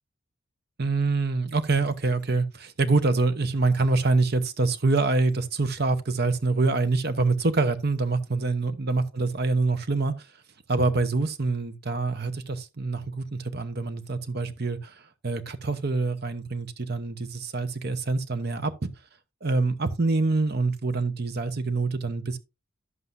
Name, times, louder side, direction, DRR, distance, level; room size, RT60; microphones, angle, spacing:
voice 1, 0.8-10.3 10.7-18.9 19.4-22.4, right 3 dB, 50° right, 0.9 m, -25 dB
11.0 x 7.7 x 2.6 m
head